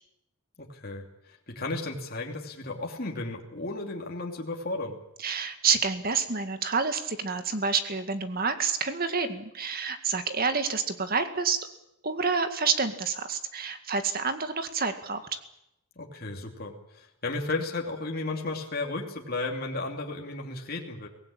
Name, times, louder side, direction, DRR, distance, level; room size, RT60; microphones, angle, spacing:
voice 1, 0.6-5.0 16.0-21.1, left 2 dB, 45° left, 1 dB, 2.9 m, -34 dB
voice 2, 5.2-11.7 12.0-15.4, right 5 dB, 45° right, 8 dB, 2.0 m, -28 dB
24.0 x 18.0 x 8.7 m, 0.83 s
head